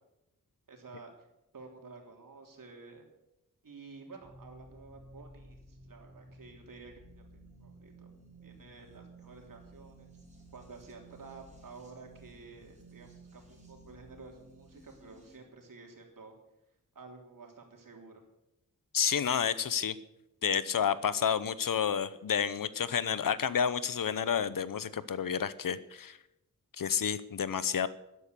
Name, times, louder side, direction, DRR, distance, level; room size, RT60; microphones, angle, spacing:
voice 1, 0.7-1.1 1.5-3.0 3.6-7.2 7.6-8.1 8.4-10.1 10.5-16.3 17.0-18.2, right 4 dB, 80° right, 2 dB, 3.5 m, -51 dB
sound 1, 4.2-15.4, right 2 dB, 20° right, 6.1 m, -55 dB
voice 2, 18.9-19.9 20.4-26.2 26.8-27.9, left 7 dB, 85° left, 16 dB, 0.9 m, -30 dB
13.0 x 11.0 x 8.3 m, 0.89 s
wide cardioid pair, 105°, 32 cm